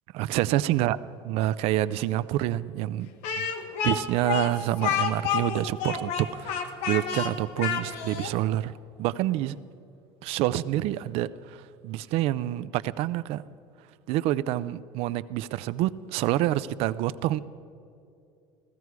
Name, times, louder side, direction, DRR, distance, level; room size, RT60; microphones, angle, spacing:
voice 1, 0.1-1.0 1.2-3.1 3.4-3.5 3.8-8.7 9.0-9.6 10.2-13.4 14.1-17.4, right 14 dB, 65° right, 15 dB, 0.4 m, -27 dB
Speech, 3.2-8.3, left 7 dB, 80° left, 1.3 m, -29 dB
15.5 x 14.5 x 4.7 m, 2.6 s
cardioid pair, 155°, 11 cm